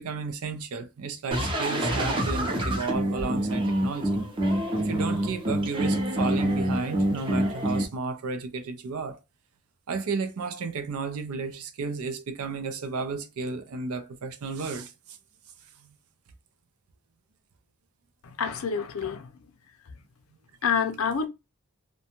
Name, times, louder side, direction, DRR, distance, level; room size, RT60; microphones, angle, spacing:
voice 1, 0.0-4.2 4.8-9.2 9.9-15.2 15.8-16.0, right 4 dB, 75° right, 0.5 m, -33 dB
sound 1, 1.3-7.8, right 1 dB, 25° right, 0.6 m, -26 dB
voice 2, 18.2-19.5 19.8-20.0 20.6-21.3, left 6 dB, 70° left, 0.5 m, -28 dB
2.6 x 2.2 x 2.8 m
head